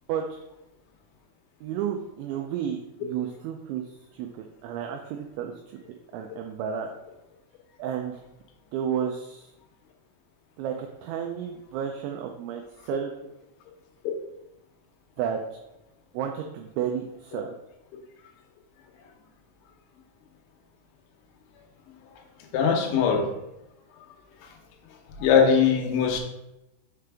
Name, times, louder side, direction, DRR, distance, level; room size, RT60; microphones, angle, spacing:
voice 1, 1.6-3.8 4.1-5.5 6.1-6.9 7.8-8.2 8.7-9.5 10.6-13.1 15.2-15.4 16.1-17.5, right 8 dB, 85° right, 3 dB, 2.6 m, -32 dB
voice 2, 22.5-23.2 25.2-26.2, left 6 dB, 75° left, 2 dB, 2.9 m, -20 dB
6.6 x 5.1 x 3.4 m, 0.92 s
omnidirectional pair, 5.8 m